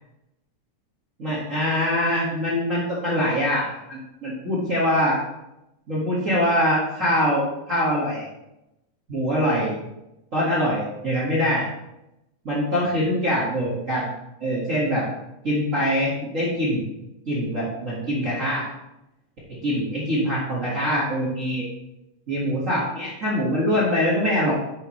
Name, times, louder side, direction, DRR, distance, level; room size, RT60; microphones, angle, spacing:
voice 1, 1.2-5.2 5.9-8.3 9.1-9.7 10.3-11.7 12.4-14.1 14.4-15.0 15.4-16.8 17.2-18.7 19.6-21.6 22.3-24.5, equal, 30° right, -7 dB, 1.6 m, -23 dB
10.0 x 6.0 x 3.2 m, 0.90 s
omnidirectional pair, 3.5 m